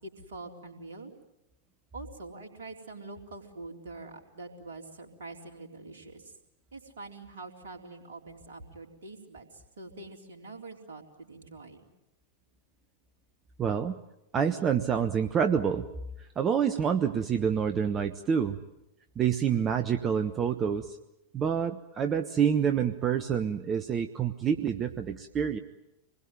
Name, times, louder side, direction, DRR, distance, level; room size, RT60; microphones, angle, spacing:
voice 1, 0.0-1.1 1.9-6.3 6.7-11.8, right 3 dB, 65° right, 3 dB, 3.8 m, -45 dB
voice 2, 13.6-14.0 14.3-15.9 16.4-18.6 19.2-21.0 21.3-25.6, right 7 dB, 25° right, 7 dB, 1.1 m, -27 dB
26.5 x 20.5 x 9.2 m, 0.91 s
figure-of-eight pair, 90°, 0 cm